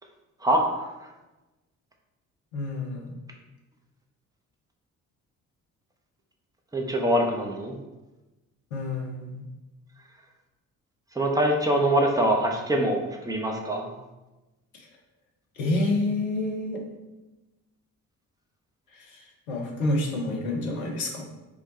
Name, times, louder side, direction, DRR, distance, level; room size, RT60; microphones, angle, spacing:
voice 1, 0.4-0.7 6.7-7.8 11.1-13.9, right 1 dB, 10° right, 1 dB, 0.7 m, -24 dB
voice 2, 2.5-3.1 8.7-9.4 15.6-16.8 19.0-19.2 19.5-21.2, left 2 dB, 80° left, -1 dB, 0.8 m, -28 dB
4.7 x 2.2 x 4.0 m, 1.1 s
figure-of-eight pair, 40°, 41 cm